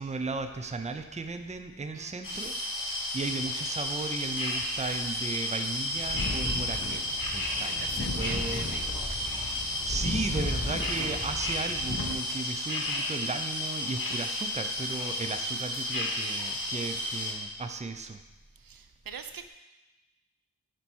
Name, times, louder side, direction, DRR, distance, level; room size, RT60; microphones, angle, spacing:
voice 1, 0.0-8.6 8.9-9.4 9.8-18.2, right 3 dB, 20° right, 7 dB, 0.4 m, -36 dB
voice 2, 1.9-2.5 7.6-9.2 18.6-19.5, right 6 dB, 75° right, 8 dB, 0.5 m, -44 dB
sound 1, 2.2-17.3, left 1 dB, 65° left, 1.2 m, -32 dB
sound 2, 5.9-12.1, left 2 dB, 45° left, 1.0 m, -35 dB
7.1 x 4.5 x 4.5 m, 1.1 s
wide cardioid pair, 50°, 35 cm